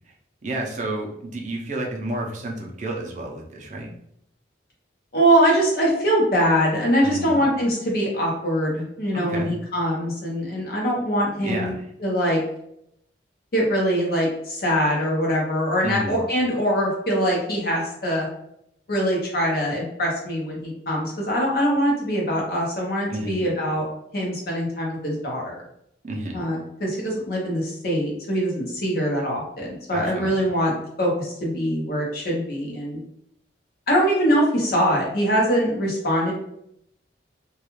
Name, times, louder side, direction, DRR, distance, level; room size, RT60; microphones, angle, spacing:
voice 1, 0.4-3.9 7.0-7.4 9.1-9.6 11.4-11.8 15.8-16.2 23.1-23.5 26.0-26.4 29.9-30.3, right 1 dB, 45° right, 0 dB, 0.5 m, -30 dB
voice 2, 5.1-12.4 13.5-18.3 18.9-23.9 24.1-25.6 26.3-30.7 31.0-33.0 33.9-36.3, equal, 55° left, -2 dB, 0.8 m, -23 dB
2.3 x 2.3 x 3.0 m, 0.75 s
head